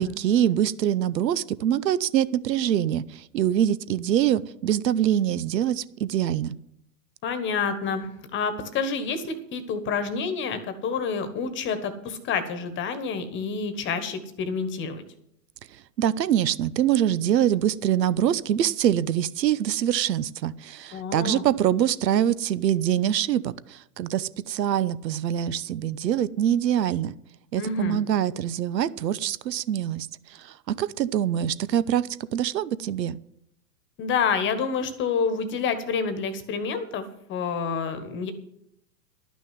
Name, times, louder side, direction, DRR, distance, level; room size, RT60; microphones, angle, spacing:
voice 1, 0.0-6.6 16.0-27.1 27.5-33.2, right 10 dB, 90° right, 18 dB, 0.8 m, -24 dB
voice 2, 7.2-15.0 20.9-21.4 27.6-28.0 34.0-38.3, left 5 dB, 25° left, 11 dB, 1.3 m, -28 dB
12.0 x 6.2 x 9.4 m, 0.75 s
hypercardioid pair, 135°, 48 cm